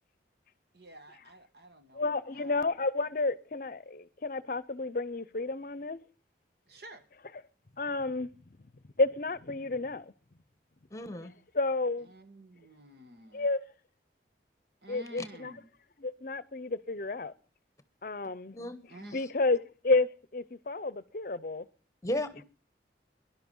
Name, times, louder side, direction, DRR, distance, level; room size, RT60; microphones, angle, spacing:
voice 1, 0.7-2.7 6.7-7.1 12.0-13.5 14.8-15.7 18.9-19.2, right 1 dB, 65° right, 1.6 m, -51 dB
voice 2, 1.9-6.0 7.8-8.3 8.6-8.7 9.0-10.1 11.5-12.1 13.3-13.6 14.9-15.5 16.0-17.3 18.0-18.6 19.0-21.7, left 3 dB, 50° left, 0.7 m, -31 dB
voice 3, 10.9-11.3 15.2-15.3 18.5-18.8 19.1-19.2 22.0-22.4, left 1 dB, 15° left, 1.1 m, -35 dB
18.0 x 11.5 x 5.5 m
head